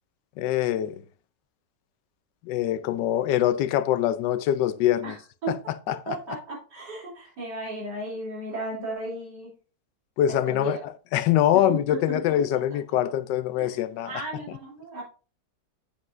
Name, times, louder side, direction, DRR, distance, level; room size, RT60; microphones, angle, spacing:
voice 1, 0.4-1.0 2.4-5.1 5.9-6.2 10.2-14.1, left 11 dB, 80° left, 1.2 m, -24 dB
voice 2, 5.4-9.5 10.5-10.8 11.5-12.6 13.6-13.8 14.1-15.0, right 2 dB, 70° right, 3.7 m, -35 dB
7.7 x 7.2 x 2.6 m
omnidirectional pair, 1.9 m